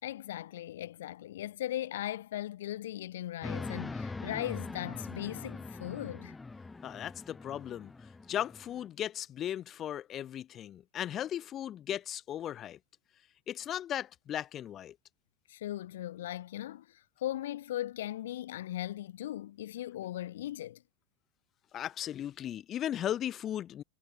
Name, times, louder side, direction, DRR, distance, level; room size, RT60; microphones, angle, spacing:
voice 1, 0.0-6.3 15.5-20.8, left 13 dB, 80° left, 4.4 m, -38 dB
sound 1, 3.4-8.9, left 3 dB, 15° left, 3.0 m, -42 dB
voice 2, 6.8-7.9 8.3-12.8 13.5-14.9 21.7-23.8, left 11 dB, 40° left, 2.7 m, -36 dB
hypercardioid pair, 95°, 0 cm